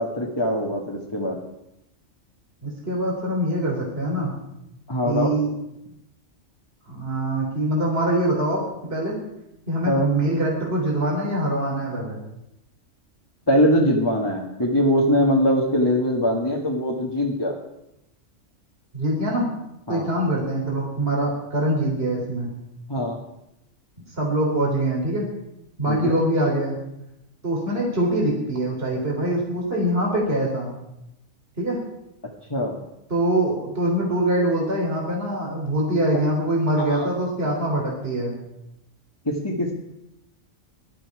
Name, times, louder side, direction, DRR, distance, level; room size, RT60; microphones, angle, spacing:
voice 1, 0.0-1.4 4.9-5.4 9.9-10.1 13.5-17.6 19.9-20.1 22.9-23.2 25.9-26.2 32.5-32.8 36.8-37.1 39.3-39.7, equal, 20° left, -2 dB, 1.8 m, -22 dB
voice 2, 2.6-4.4 5.0-5.5 6.9-9.2 9.7-12.2 18.9-19.5 19.9-22.5 24.2-25.3 25.8-26.8 27.4-30.7 31.6-31.8 33.1-38.4, right 1 dB, 50° right, -2 dB, 3.8 m, -24 dB
20.0 x 12.0 x 4.9 m, 0.86 s
omnidirectional pair, 1.3 m